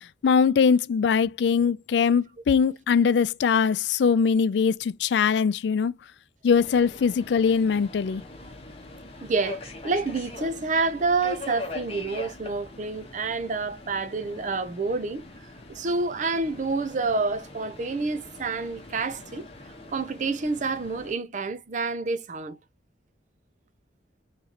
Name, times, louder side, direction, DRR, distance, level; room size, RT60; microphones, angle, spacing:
voice 1, 0.2-5.9 6.4-8.2, left 6 dB, 75° left, 0.3 m, -22 dB
Subway metro underground, 6.5-21.1, left 2 dB, 35° left, 1.1 m, -42 dB
voice 2, 9.2-15.2 15.7-19.5 19.9-22.6, right 3 dB, 45° right, 0.5 m, -28 dB
3.9 x 3.1 x 2.9 m
head